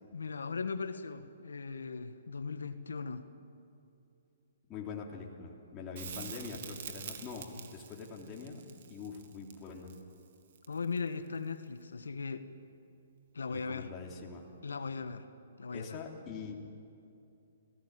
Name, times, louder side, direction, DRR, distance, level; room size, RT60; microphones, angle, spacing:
voice 1, 0.1-3.3 10.7-12.5 13.3-13.9 14.6-15.3 15.6-16.0, left 4 dB, 85° left, 9 dB, 1.5 m, -38 dB
voice 2, 4.7-8.6 8.9-9.9 13.5-14.5 15.7-16.7, left 5 dB, 25° left, -2 dB, 3.2 m, -44 dB
Crackle, 5.9-11.1 13.8-13.9, right 8 dB, 55° right, 2.0 m, -46 dB
27.5 x 17.5 x 8.9 m, 2.6 s
hypercardioid pair, 135°, 0 cm